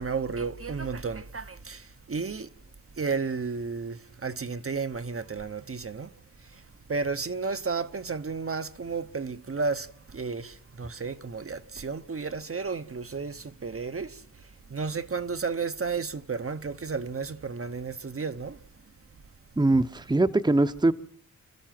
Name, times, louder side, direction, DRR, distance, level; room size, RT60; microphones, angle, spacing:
voice 1, 0.0-1.8 2.1-2.5 3.0-4.0 4.2-6.1 6.9-9.9 10.1-10.5 10.8-14.1 14.7-18.5, right 4 dB, 45° right, 0.9 m, -32 dB
voice 2, 19.6-20.9, right 2 dB, 15° right, 0.8 m, -22 dB
26.5 x 14.0 x 7.6 m
wide cardioid pair, 85°, 31 cm